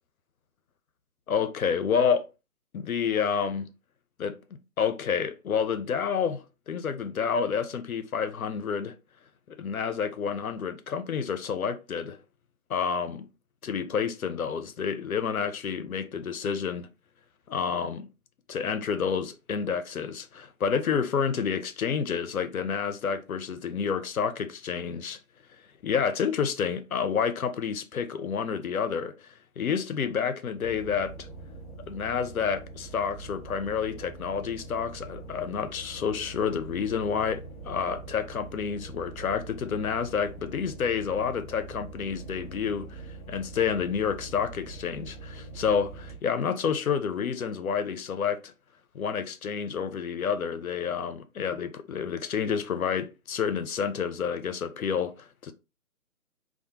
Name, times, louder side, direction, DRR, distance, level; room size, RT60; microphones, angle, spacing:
voice 1, 1.3-2.2 2.7-3.7 4.2-4.3 4.8-8.9 9.5-12.2 12.7-13.3 13.6-16.9 17.5-18.1 18.5-25.2 25.8-29.3 29.6-31.3 31.9-48.5 48.9-55.5, left 6 dB, 75° left, 0.5 m, -29 dB
sound 1, 30.5-46.1, right 3 dB, 25° right, 0.6 m, -43 dB
2.1 x 2.1 x 2.8 m
figure-of-eight pair, 140°, 43 cm